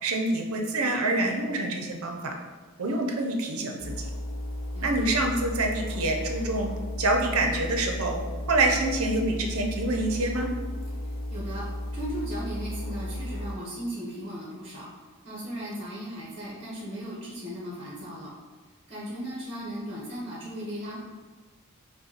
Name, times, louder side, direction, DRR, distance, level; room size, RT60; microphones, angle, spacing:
voice 1, 0.0-2.3 2.8-4.1 4.8-6.7 7.0-8.2 8.5-10.5, right 2 dB, 85° right, 2 dB, 0.6 m, -26 dB
sound 1, 3.8-13.5, left 1 dB, 60° left, 0.6 m, -34 dB
voice 2, 11.3-14.9 15.2-18.3 18.9-21.0, equal, 25° right, -5 dB, 0.9 m, -36 dB
5.4 x 2.2 x 4.3 m, 1.4 s
head